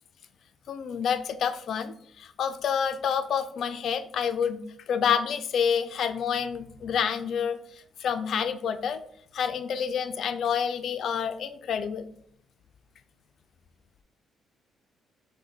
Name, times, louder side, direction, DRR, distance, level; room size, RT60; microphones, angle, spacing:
voice 1, 0.7-7.6 8.0-9.0 9.3-12.1, left 7 dB, 65° left, 10 dB, 0.4 m, -28 dB
5.0 x 2.2 x 3.9 m, 0.65 s
cardioid pair, 90°, 0 cm